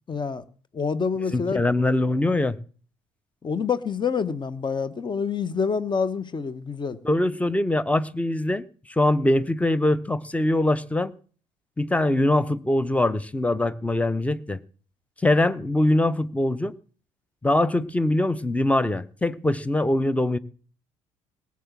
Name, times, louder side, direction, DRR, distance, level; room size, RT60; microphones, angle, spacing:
voice 1, 0.1-0.4 0.7-1.6 3.4-7.0, left 5 dB, 25° left, 1.1 m, -27 dB
voice 2, 1.3-2.5 7.0-11.1 11.8-14.6 15.2-16.7 17.4-20.4, left 1 dB, 10° left, 0.8 m, -23 dB
18.0 x 7.2 x 7.5 m
figure-of-eight pair, 55°, 17 cm